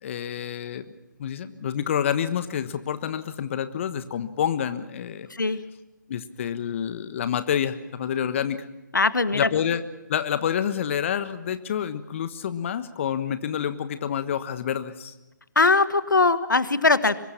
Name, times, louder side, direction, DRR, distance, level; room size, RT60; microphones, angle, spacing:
voice 1, 0.0-0.8 1.2-5.3 6.1-8.6 9.3-9.8 10.1-15.1, left 9 dB, 40° left, 12 dB, 1.3 m, -28 dB
voice 2, 8.9-9.5 15.5-17.2, left 3 dB, 80° left, 14 dB, 1.6 m, -20 dB
25.0 x 21.5 x 5.9 m, 1.0 s
figure-of-eight pair, 140°, 10 cm